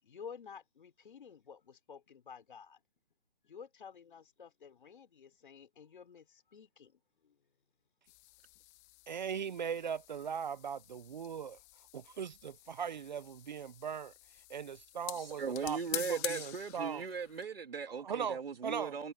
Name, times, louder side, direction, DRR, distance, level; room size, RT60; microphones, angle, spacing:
voice 1, 0.0-2.8 3.4-7.4, left 6 dB, 60° left, 6.1 m, -52 dB
sound 1, 8.1-17.4, left 21 dB, 15° left, 1.5 m, -47 dB
voice 2, 9.1-11.6 11.9-14.1 14.5-17.0 18.0-19.0, right 7 dB, 50° right, 0.9 m, -39 dB
voice 3, 15.2-19.1, right 5 dB, 75° right, 3.5 m, -38 dB
hypercardioid pair, 165°, 29 cm